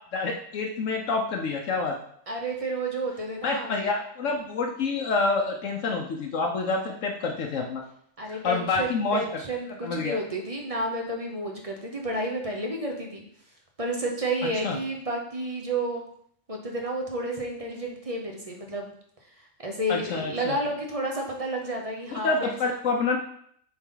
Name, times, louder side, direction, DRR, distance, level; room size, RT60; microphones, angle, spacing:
voice 1, 0.1-2.0 3.4-7.8 8.3-9.4 9.8-10.2 14.6-14.8 19.9-20.6 22.1-23.2, left 3 dB, 75° left, 1 dB, 1.1 m, -27 dB
voice 2, 2.3-3.7 8.2-13.2 13.8-16.0 16.5-18.9 19.4-22.6, right 1 dB, 30° right, 1 dB, 0.9 m, -31 dB
7.3 x 3.9 x 3.9 m, 0.65 s
omnidirectional pair, 1.3 m